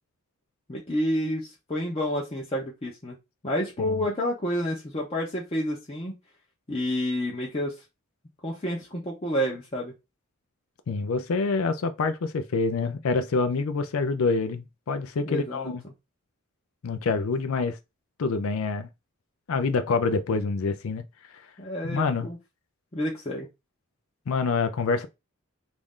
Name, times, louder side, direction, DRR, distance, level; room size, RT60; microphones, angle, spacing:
voice 1, 0.7-3.2 3.4-6.2 6.7-7.8 8.4-9.9 15.2-15.7 21.6-22.4 22.9-23.5, equal, 25° left, 0.6 m, -29 dB
voice 2, 10.9-15.8 16.8-17.8 18.2-18.9 19.5-21.0 21.3-21.4 21.8-22.3 24.3-25.1, left 4 dB, 75° left, 0.4 m, -26 dB
3.1 x 2.6 x 3.6 m
head